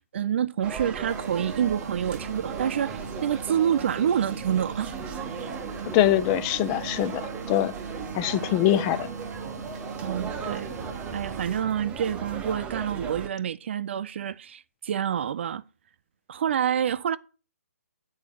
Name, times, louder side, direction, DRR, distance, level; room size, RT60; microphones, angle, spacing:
voice 1, 0.1-4.9 10.0-10.7 11.1-15.6 16.3-17.2, right 9 dB, 45° right, 0.4 m, -27 dB
sound 1, 0.6-13.3, right 6 dB, 15° right, 0.8 m, -37 dB
sound 2, 1.1-11.4, right 4 dB, 85° right, 0.9 m, -39 dB
voice 2, 5.9-7.2 7.5-7.7 8.1-9.1, left 13 dB, 20° left, 0.5 m, -23 dB
8.6 x 4.3 x 6.9 m
hypercardioid pair, 145°, 9 cm